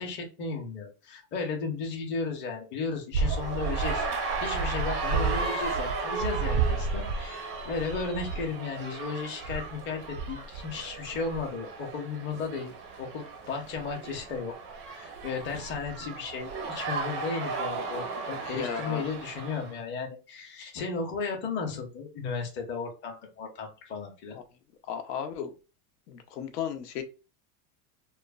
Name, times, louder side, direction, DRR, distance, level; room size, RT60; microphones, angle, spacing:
voice 1, 0.0-4.0 4.4-12.7 13.0-14.5 14.8-24.4, left 4 dB, 25° left, 1 dB, 0.7 m, -35 dB
sound 1, 3.1-8.5 9.4-11.4 13.7-14.4 15.2-16.1 16.4-16.8, right 4 dB, 75° right, 0.6 m, -32 dB
sound 2, 3.2-19.7, right 4 dB, 25° right, 0.5 m, -36 dB
voice 2, 18.5-19.0 24.9-25.5 26.1-27.0, left 8 dB, 85° left, 7 dB, 0.7 m, -34 dB
3.1 x 2.0 x 2.3 m, 0.32 s
supercardioid pair, 140°, 47 cm